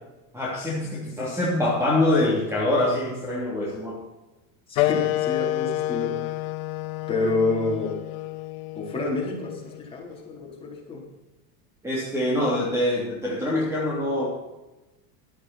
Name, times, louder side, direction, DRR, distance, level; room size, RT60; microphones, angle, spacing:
voice 1, 0.3-4.0 11.8-14.3, left 1 dB, 5° right, -4 dB, 3.1 m, -24 dB
sound 1, 4.7-9.9, left 16 dB, 65° left, 1.0 m, -29 dB
voice 2, 4.7-6.4 7.1-7.9 8.7-11.0, left 3 dB, 10° left, -3 dB, 4.3 m, -28 dB
12.5 x 12.5 x 4.4 m, 1.0 s
supercardioid pair, 135°, 44 cm